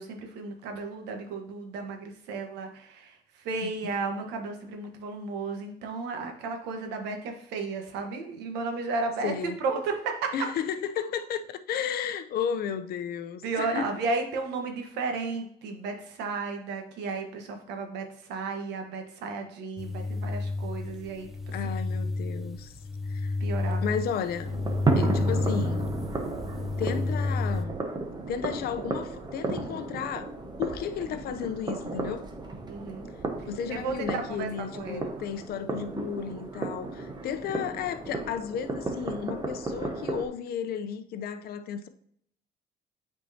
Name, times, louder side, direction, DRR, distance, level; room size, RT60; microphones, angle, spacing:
voice 1, 0.0-10.5 13.4-21.5 23.4-24.0 32.7-33.1 33.4-35.1, right 4 dB, 85° right, 1.3 m, -34 dB
voice 2, 9.2-9.5 10.3-13.9 21.5-22.7 23.1-23.4 23.8-24.5 25.0-25.9 26.8-27.8 28.3-30.3 30.6-32.2 33.5-41.9, left 8 dB, 65° left, 0.7 m, -33 dB
sound 1, 19.8-27.6, left 3 dB, ahead, 0.6 m, -31 dB
sound 2, 24.4-40.3, right 3 dB, 25° right, 1.1 m, -34 dB
8.4 x 4.6 x 2.8 m
cardioid pair, 110°, 17 cm